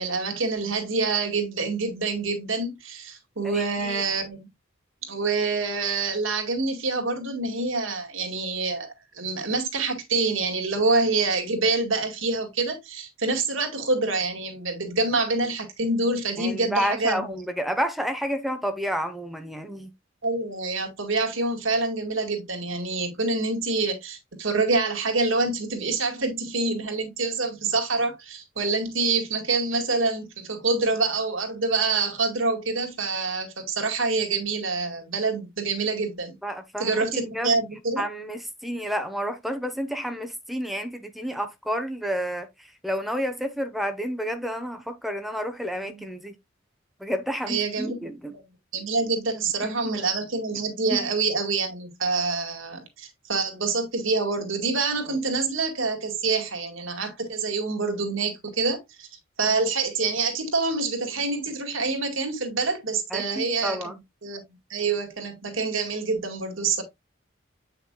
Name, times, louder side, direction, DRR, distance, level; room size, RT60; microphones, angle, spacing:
voice 1, 0.0-4.5 5.1-17.3 20.2-36.4 36.8-38.0 45.8-46.1 47.5-48.1 48.7-59.1 59.4-63.8 64.2-64.4 64.7-66.8, right 3 dB, 90° right, 2.0 m, -26 dB
voice 2, 3.4-4.0 16.4-19.9 36.4-37.6 38.0-46.3 47.0-48.4 49.6-49.9 50.9-51.1 63.1-64.0, equal, ahead, 1.0 m, -30 dB
8.4 x 5.8 x 2.3 m
head